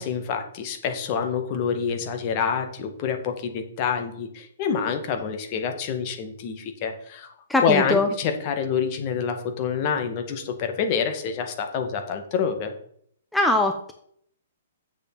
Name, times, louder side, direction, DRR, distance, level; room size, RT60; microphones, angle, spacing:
voice 1, 0.0-7.3 7.6-12.7, left 6 dB, 40° left, 6 dB, 1.9 m, -27 dB
voice 2, 7.5-8.1 13.3-13.9, left 2 dB, 5° left, 4 dB, 0.9 m, -21 dB
7.6 x 6.9 x 7.4 m, 0.65 s
figure-of-eight pair, 120°, 0 cm